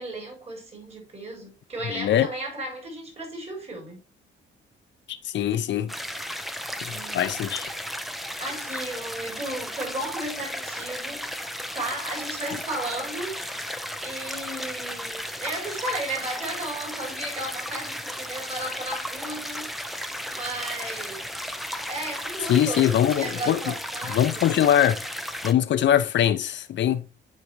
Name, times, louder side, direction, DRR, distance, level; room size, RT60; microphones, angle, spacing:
voice 1, 0.0-4.0 6.9-7.4 8.4-11.3 11.7-13.7 14.0-19.7 20.3-21.5 21.9-22.8 23.1-24.5, right 1 dB, 30° right, 4.7 m, -35 dB
voice 2, 1.9-2.3 5.2-5.9 6.8-7.7 22.5-23.6 24.1-25.0 25.4-27.0, left 10 dB, 65° left, 0.8 m, -22 dB
sound 1, 5.9-25.5, equal, ahead, 0.8 m, -34 dB
9.8 x 4.5 x 3.4 m
cardioid pair, 90°, 20 cm